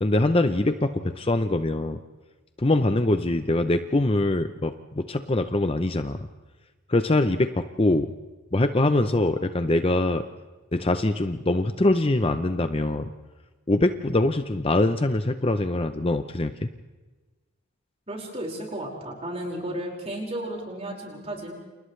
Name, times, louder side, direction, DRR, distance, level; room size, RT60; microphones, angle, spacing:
voice 1, 0.0-2.0 2.6-6.3 6.9-8.1 8.5-10.2 10.7-13.1 13.7-16.7, left 2 dB, 25° left, 9 dB, 0.7 m, -23 dB
voice 2, 18.1-21.5, right 1 dB, 30° right, -1 dB, 5.3 m, -33 dB
29.5 x 28.5 x 3.3 m, 1.2 s
head